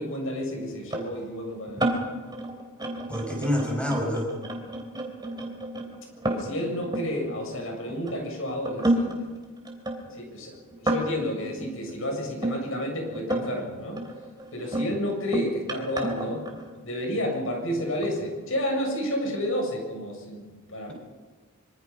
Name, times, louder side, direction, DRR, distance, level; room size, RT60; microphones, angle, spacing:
voice 1, 0.0-1.9 6.2-9.3 10.1-14.0 14.5-16.5 16.8-20.9, equal, 65° left, 1 dB, 7.5 m, -31 dB
sound 1, 0.9-8.1 8.7-12.6 13.1-13.7 14.0-17.1 17.8-18.3, right 1 dB, 20° right, 3.3 m, -31 dB
voice 2, 3.1-4.3, left 1 dB, 5° left, 0 dB, 6.1 m, -27 dB
25.0 x 24.5 x 5.6 m, 1.4 s
head